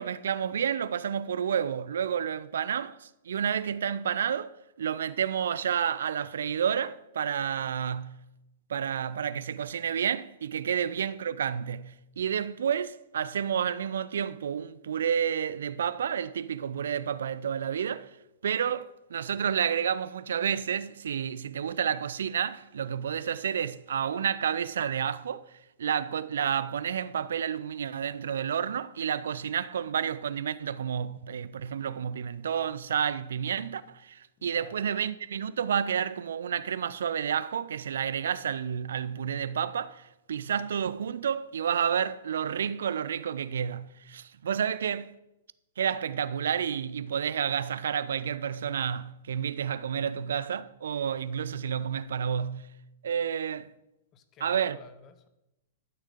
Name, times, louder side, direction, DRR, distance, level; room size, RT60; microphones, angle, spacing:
voice 1, 0.0-8.2 8.7-18.1 18.4-45.1 45.8-52.7 53.0-53.7 54.4-54.8, right 8 dB, 60° right, 0.4 m, -30 dB
voice 2, 34.4-34.9 54.1-55.3, left 7 dB, 30° left, 0.9 m, -53 dB
11.5 x 6.4 x 5.1 m
figure-of-eight pair, 105°, 0 cm